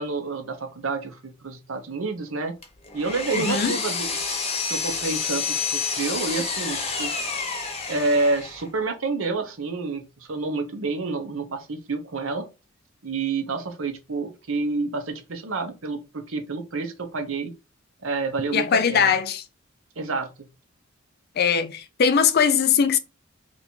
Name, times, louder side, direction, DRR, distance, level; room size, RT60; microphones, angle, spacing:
voice 1, 0.0-2.5 2.9-4.1 4.7-7.1 7.9-12.5 13.0-17.5 18.0-19.2 20.0-20.3, right 3 dB, 75° right, 0.8 m, -28 dB
Power tool, 2.6-8.7, left 5 dB, 30° left, 0.8 m, -29 dB
voice 2, 3.3-3.8 18.5-19.4 21.4-23.0, left 6 dB, 50° left, 0.4 m, -21 dB
2.9 x 2.6 x 4.3 m
head